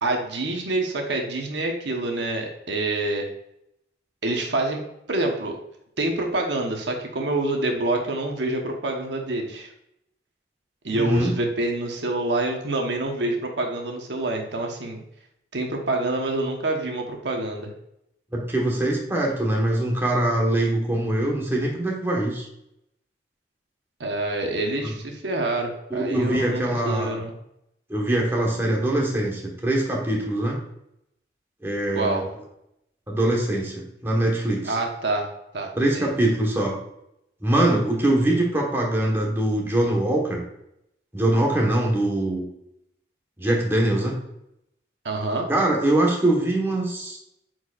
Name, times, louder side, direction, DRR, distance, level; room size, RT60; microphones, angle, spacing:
voice 1, 0.0-3.3 4.2-4.8 5.1-5.6 6.0-9.7 10.8-15.0 15.5-17.7 24.0-27.3 31.9-32.3 34.6-36.1 45.0-45.5, right 2 dB, 80° right, 2 dB, 1.1 m, -27 dB
voice 2, 10.9-11.3 18.3-22.5 24.8-24.9 25.9-27.2 27.9-30.6 31.6-32.2 33.1-34.8 35.8-36.8 37.4-40.4 41.1-42.4 43.4-44.2 45.5-47.2, right 1 dB, 15° right, -2 dB, 1.3 m, -23 dB
8.8 x 4.6 x 2.5 m, 0.80 s
head